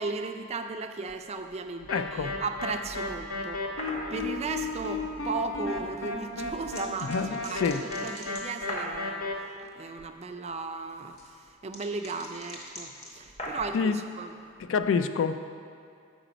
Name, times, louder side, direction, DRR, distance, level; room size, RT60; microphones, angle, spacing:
voice 1, 0.0-3.7 4.1-7.1 7.4-9.3 9.6-14.3, right 4 dB, 30° right, 6 dB, 0.4 m, -36 dB
sound 1, 1.8-7.8, equal, 10° left, 0.6 m, -49 dB
sound 2, 1.9-9.3, left 3 dB, 85° left, 0.8 m, -34 dB
voice 2, 1.9-2.3 7.0-7.8 13.7-14.0 14.6-15.4, left 5 dB, 65° left, 11 dB, 0.3 m, -27 dB
sound 3, 3.8-4.1 6.0-9.0 10.6-13.8, left 1 dB, 35° left, 0.9 m, -41 dB
7.7 x 5.0 x 5.0 m, 2.3 s
head